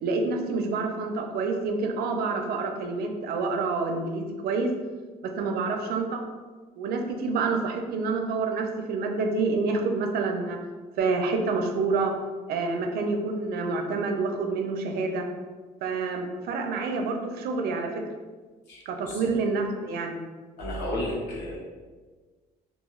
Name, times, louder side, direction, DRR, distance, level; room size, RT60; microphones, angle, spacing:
voice 1, 0.0-4.7 5.2-6.2 6.8-10.6 11.0-12.1 12.5-15.2 15.8-18.0 18.9-20.2, right 4 dB, 65° right, 4 dB, 0.4 m, -28 dB
voice 2, 18.7-19.3 20.6-21.6, left 1 dB, 80° left, -6 dB, 0.8 m, -33 dB
2.3 x 2.3 x 3.1 m, 1.4 s
cardioid pair, 110°, 17 cm